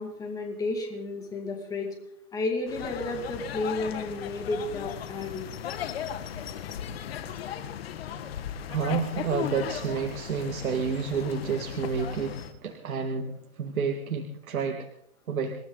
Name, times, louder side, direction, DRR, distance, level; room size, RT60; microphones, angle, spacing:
voice 1, 0.0-1.9 2.3-5.5, left 2 dB, 10° left, 2 dB, 2.4 m, -32 dB
sound 1, 2.7-12.5, left 9 dB, 45° left, 1.7 m, -37 dB
voice 2, 8.7-14.9 15.3-15.5, right 5 dB, 70° right, 3 dB, 2.2 m, -30 dB
27.5 x 13.0 x 4.0 m, 0.73 s
hypercardioid pair, 170°, 43 cm